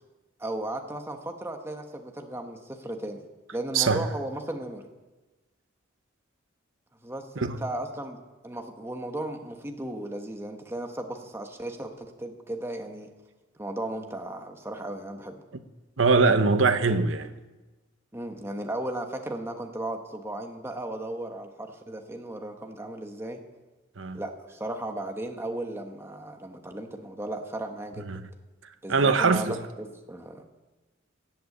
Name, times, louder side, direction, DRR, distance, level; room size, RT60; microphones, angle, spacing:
voice 1, 0.4-3.2 3.5-4.9 7.0-13.1 13.6-15.4 18.1-23.4 24.1-28.1 28.8-30.4, right 1 dB, 10° right, 1.2 m, -36 dB
voice 2, 3.7-4.1 7.4-7.6 16.0-17.3 24.0-24.2 28.0-28.2 28.9-29.6, right 4 dB, 70° right, 0.9 m, -22 dB
14.5 x 8.0 x 8.5 m
head